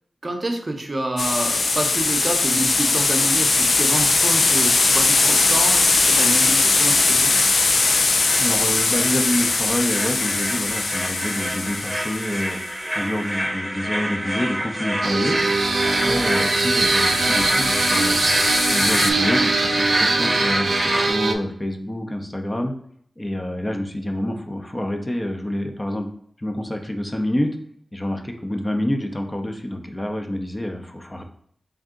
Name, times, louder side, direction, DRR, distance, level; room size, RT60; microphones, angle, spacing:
voice 1, 0.2-7.3 16.0-16.2, right 1 dB, 40° right, 4 dB, 0.7 m, -28 dB
sound 1, 1.2-12.6 15.6-19.1, left 3 dB, 75° left, 0.4 m, -21 dB
sound 2, 3.7-21.1, equal, ahead, 0.9 m, -28 dB
voice 2, 8.4-12.6 12.9-15.4 15.8-18.2 18.7-22.7 23.2-26.1 26.4-27.6 27.9-31.2, left 1 dB, 30° left, 4 dB, 0.6 m, -27 dB
sound 3, 15.0-21.3, right 3 dB, 75° right, 0.4 m, -21 dB
3.5 x 2.7 x 3.6 m, 0.64 s
cardioid pair, 40°, 0 cm